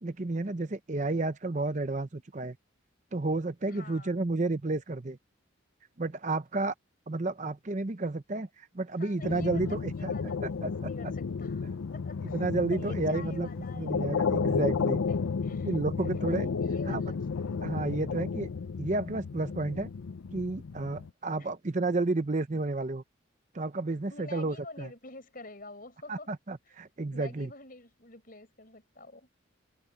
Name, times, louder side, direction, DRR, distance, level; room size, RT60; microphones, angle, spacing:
voice 1, 0.0-2.6 3.1-5.2 6.0-6.7 7.1-10.1 10.4-10.7 12.3-13.5 13.8-15.1 15.6-16.5 16.9-17.0 17.6-18.5 18.8-19.9 20.3-23.0 23.5-24.9 26.1-27.5, right 2 dB, 35° right, 0.7 m, -31 dB
voice 2, 3.7-4.2 9.0-12.4 12.7-14.3 15.1-15.2 15.4-15.8 16.6-17.3 21.4-21.5 24.1-26.3 27.1-29.3, left 2 dB, 45° left, 5.1 m, -48 dB
sound 1, 9.2-21.1, left 5 dB, 90° left, 0.5 m, -32 dB
head